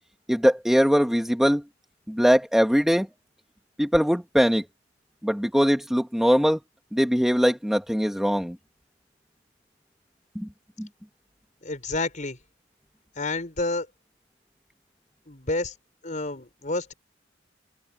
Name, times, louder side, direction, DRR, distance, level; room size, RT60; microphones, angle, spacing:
voice 1, 0.3-1.6 2.1-3.1 3.8-4.6 5.2-6.6 6.9-8.6 10.3-10.5 10.8-10.9, equal, ahead, 1.4 m, -21 dB
voice 2, 11.6-12.4 13.1-13.9 15.3-15.7 16.0-16.9, left 2 dB, 40° left, 5.1 m, -29 dB
head